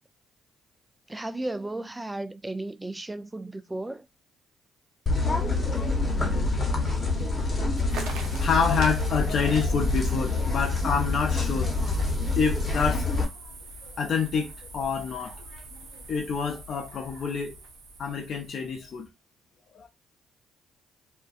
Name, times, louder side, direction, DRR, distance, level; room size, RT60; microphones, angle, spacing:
voice 1, 1.1-4.0, right 2 dB, 15° right, 0.4 m, -34 dB
sound 1, 5.1-13.2, left 3 dB, 30° left, 0.9 m, -26 dB
sound 2, 7.9-19.1, right 3 dB, 75° right, 0.6 m, -43 dB
voice 2, 8.4-11.9 12.4-13.3 13.8-15.4 16.1-17.6 18.0-19.1 19.8-19.9, left 6 dB, 55° left, 0.5 m, -28 dB
2.5 x 2.1 x 2.4 m
hypercardioid pair, 55°, 0 cm